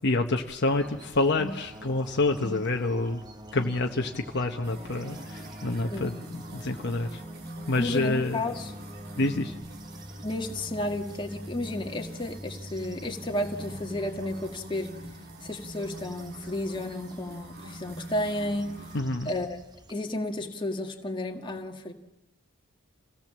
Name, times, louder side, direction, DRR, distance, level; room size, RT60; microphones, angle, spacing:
voice 1, 0.0-3.2 3.5-7.2 7.7-8.4 9.2-9.5 18.9-19.3, left 2 dB, 55° left, 3 dB, 1.1 m, -27 dB
sound 1, 0.6-19.9, equal, 20° right, 0.8 m, -46 dB
sound 2, 4.6-19.0, right 1 dB, 50° right, 2.0 m, -45 dB
voice 2, 7.8-8.7 10.2-14.9 15.4-18.8 19.3-21.9, left 1 dB, 20° left, 2 dB, 1.8 m, -32 dB
27.5 x 16.5 x 7.5 m, 0.93 s
head